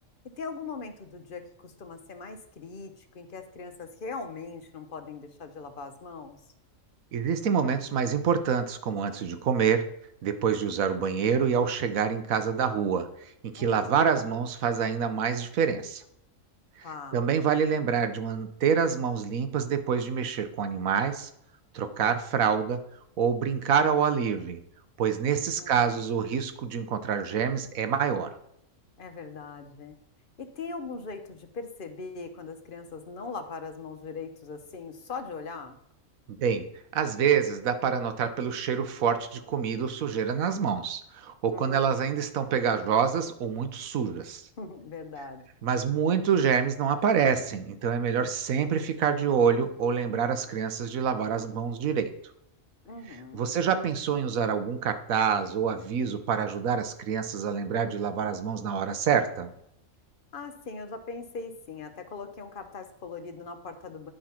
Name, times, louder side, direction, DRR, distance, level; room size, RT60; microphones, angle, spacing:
voice 1, 0.4-6.4 13.6-14.1 16.8-17.2 25.6-26.0 29.0-30.0 30.4-35.8 41.5-42.0 44.6-45.4 52.8-53.5 60.3-64.1, left 4 dB, 45° left, 7 dB, 1.0 m, -40 dB
voice 2, 7.1-9.9 10.2-13.1 13.5-16.0 17.1-21.3 21.7-22.8 23.2-24.6 25.0-28.3 36.4-44.4 45.6-52.1 53.3-59.5, right 7 dB, 80° right, 9 dB, 1.3 m, -26 dB
10.0 x 5.5 x 4.4 m, 0.74 s
omnidirectional pair, 1.4 m